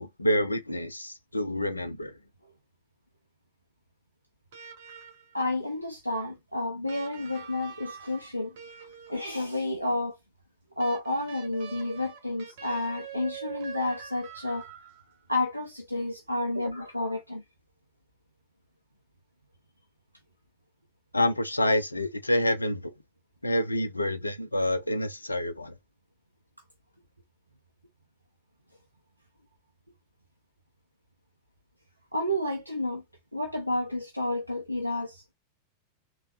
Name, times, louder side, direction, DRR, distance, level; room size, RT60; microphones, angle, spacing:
voice 1, 0.0-2.1 21.1-22.9 23.4-25.7, left 1 dB, 85° left, 0.5 m, -27 dB
sound 1, 4.5-5.5 6.9-9.4 10.8-15.3 16.6-16.7, right 8 dB, 55° right, 1.2 m, -45 dB
voice 2, 5.3-8.6 9.1-10.2 10.8-14.7 15.3-17.4 32.1-33.0 33.3-35.3, left 1 dB, 90° right, 0.6 m, -30 dB
3.3 x 3.1 x 2.5 m
figure-of-eight pair, 90°, 0 cm